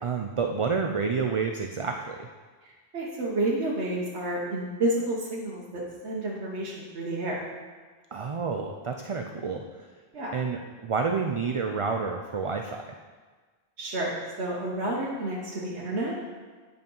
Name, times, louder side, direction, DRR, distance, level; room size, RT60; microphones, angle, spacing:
voice 1, 0.0-2.3 8.1-9.6 10.3-12.8, right 5 dB, 45° right, 4 dB, 0.4 m, -29 dB
voice 2, 2.6-7.4 10.1-10.3 13.8-16.1, right 1 dB, 80° right, -4 dB, 1.4 m, -30 dB
9.4 x 5.2 x 5.4 m, 1.4 s
omnidirectional pair, 1.1 m